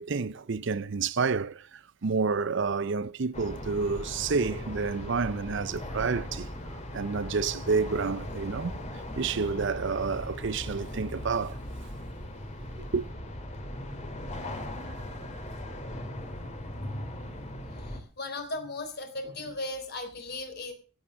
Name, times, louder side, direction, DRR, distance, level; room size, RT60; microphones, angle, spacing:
voice 1, 0.0-6.5 6.9-8.8 9.1-11.6 12.9-13.1, right 4 dB, 60° right, 0.6 m, -29 dB
sound 1, 3.3-18.0, left 1 dB, 35° left, 2.5 m, -38 dB
voice 2, 16.7-17.1 17.7-20.7, left 2 dB, 50° left, 3.5 m, -38 dB
15.5 x 8.8 x 6.2 m
head